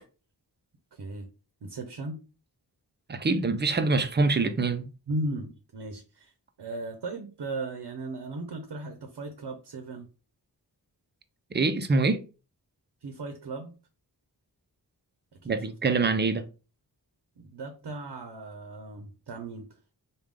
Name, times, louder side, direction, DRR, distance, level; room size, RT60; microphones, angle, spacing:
voice 1, 0.9-1.3 1.6-2.2 5.1-6.3 6.6-10.1 13.0-13.7 15.4-15.5 15.9-16.0 17.4-19.7, right 2 dB, 75° right, 0.7 m, -36 dB
voice 2, 3.1-4.9 11.5-12.2 15.4-16.4, right 3 dB, 25° right, 0.5 m, -25 dB
3.5 x 2.3 x 3.3 m
wide cardioid pair, 60°, 40 cm